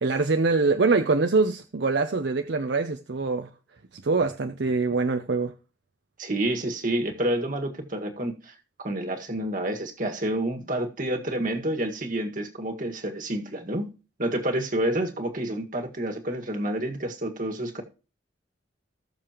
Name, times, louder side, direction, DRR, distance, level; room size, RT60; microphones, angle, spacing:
voice 1, 0.0-3.5 4.0-5.5, right 3 dB, 65° right, 0.6 m, -24 dB
voice 2, 6.2-13.9 14.2-17.8, right 1 dB, 45° right, 1.8 m, -29 dB
19.0 x 6.8 x 3.0 m
head